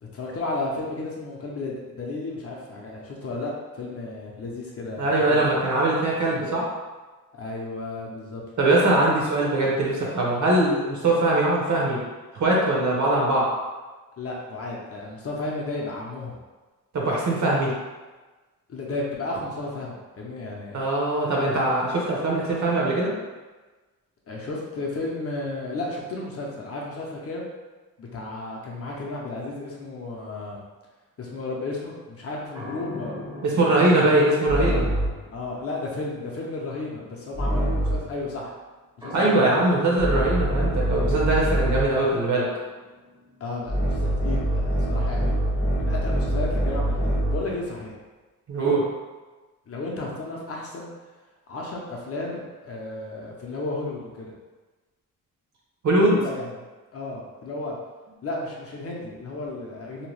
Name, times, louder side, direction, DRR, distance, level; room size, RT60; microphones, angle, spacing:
voice 1, 0.0-5.4 7.3-8.4 14.2-16.4 18.7-20.8 24.3-27.4 28.0-30.6 31.2-33.2 33.7-34.1 35.3-38.5 39.0-39.7 43.4-45.3 45.8-47.9 48.6-48.8 49.7-50.9 51.5-54.3 56.0-56.5 56.9-57.8 58.2-60.1, left 2 dB, 40° left, -3 dB, 0.6 m, -33 dB
voice 2, 5.0-6.7 8.6-12.0 12.3-13.5 16.9-17.7 20.7-23.1 33.4-34.8 39.1-42.5 48.5-48.8 55.8-56.2, right 2 dB, 55° right, -3 dB, 0.8 m, -21 dB
sound 1, 32.6-35.3 37.3-38.2 39.0-42.0 43.7-47.5, right 1 dB, 10° right, 0.6 m, -25 dB
2.8 x 2.2 x 3.1 m, 1.2 s
wide cardioid pair, 135°, 35 cm